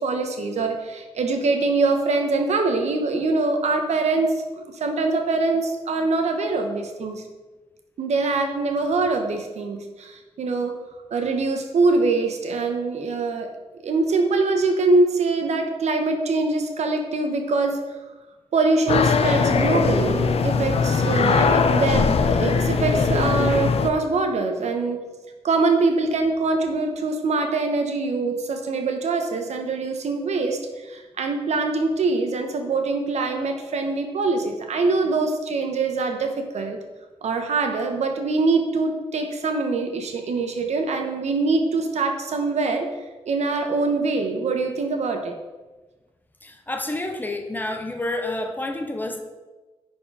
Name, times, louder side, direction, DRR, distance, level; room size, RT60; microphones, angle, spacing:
voice 1, 0.0-7.2 8.0-10.7 11.1-13.5 13.8-17.8 18.5-25.0 25.4-36.8 37.2-42.9 43.3-45.4, right 3 dB, 90° right, 5 dB, 1.1 m, -23 dB
sound 1, 18.9-23.9, left 5 dB, 65° left, 0.6 m, -20 dB
voice 2, 46.4-49.2, left 2 dB, 15° left, 4 dB, 0.6 m, -29 dB
10.0 x 4.7 x 4.9 m, 1.2 s
wide cardioid pair, 170°, 11 cm